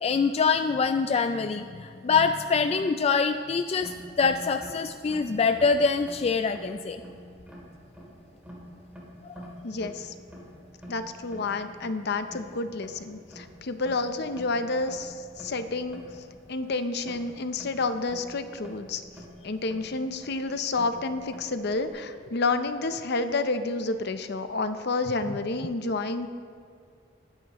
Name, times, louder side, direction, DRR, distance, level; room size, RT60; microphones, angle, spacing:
voice 1, 0.0-7.0 9.2-9.4, left 5 dB, 35° left, 7 dB, 0.3 m, -25 dB
sound 1, 3.5-21.9, equal, 10° right, 2.8 m, -47 dB
voice 2, 9.6-10.1 10.9-16.0 16.5-19.0 19.4-26.3, left 3 dB, 60° left, 9 dB, 0.7 m, -29 dB
21.5 x 9.1 x 3.1 m, 2.2 s
head